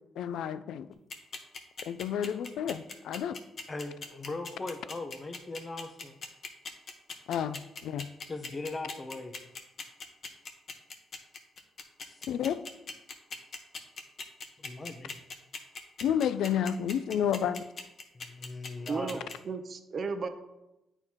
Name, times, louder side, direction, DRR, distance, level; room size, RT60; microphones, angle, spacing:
voice 1, 0.2-0.9 1.9-3.3 7.3-8.1 12.3-12.6 16.0-17.6, left 9 dB, 80° left, 14 dB, 0.3 m, -30 dB
sound 1, 1.1-19.3, left 4 dB, 50° left, 0.9 m, -40 dB
voice 2, 3.7-6.1 8.3-9.3 12.1-12.2 14.6-15.2 18.1-19.3, left 2 dB, 30° left, 6 dB, 0.7 m, -39 dB
voice 3, 18.9-20.3, right 5 dB, 45° right, 8 dB, 0.5 m, -34 dB
8.6 x 4.5 x 2.9 m, 0.94 s
cardioid pair, 90°, 0 cm